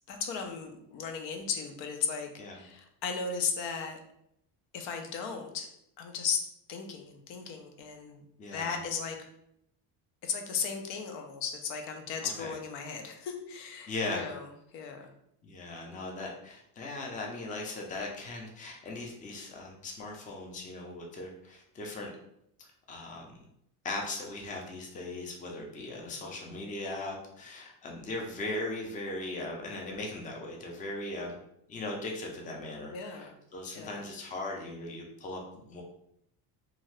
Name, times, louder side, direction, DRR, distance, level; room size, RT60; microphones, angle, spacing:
voice 1, 0.1-4.0 4.7-5.7 6.0-6.4 6.7-8.2 8.5-9.2 10.2-14.5 14.7-15.1 26.0-26.3 32.9-33.3 33.7-34.0, left 6 dB, 80° left, 4 dB, 0.7 m, -36 dB
voice 2, 8.4-8.8 12.2-12.6 13.9-14.2 15.4-22.1 22.9-23.3 23.8-31.4 31.7-35.8, left 2 dB, 20° left, 0 dB, 0.4 m, -39 dB
2.7 x 2.5 x 3.2 m, 0.76 s
cardioid pair, 140°, 42 cm